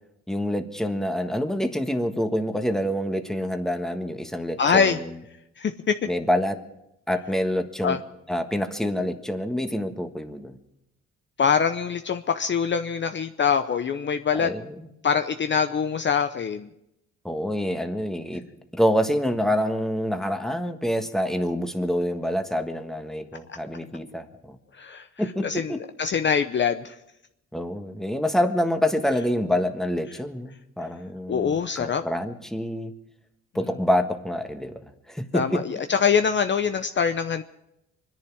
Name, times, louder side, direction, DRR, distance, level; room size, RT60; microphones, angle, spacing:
voice 1, 0.3-5.1 6.1-6.6 7.1-8.0 8.3-10.6 14.3-14.9 17.2-18.4 18.7-24.6 25.2-25.8 27.5-32.9 33.5-34.8 35.1-35.6, equal, ahead, 6 dB, 1.5 m, -26 dB
voice 2, 4.6-5.0 5.6-6.0 7.8-8.0 11.4-14.5 15.0-16.7 24.7-25.1 25.4-27.0 31.3-32.1 35.3-37.4, left 6 dB, 40° left, 8 dB, 0.7 m, -24 dB
24.5 x 10.5 x 4.8 m, 0.83 s
cardioid pair, 90°, 30 cm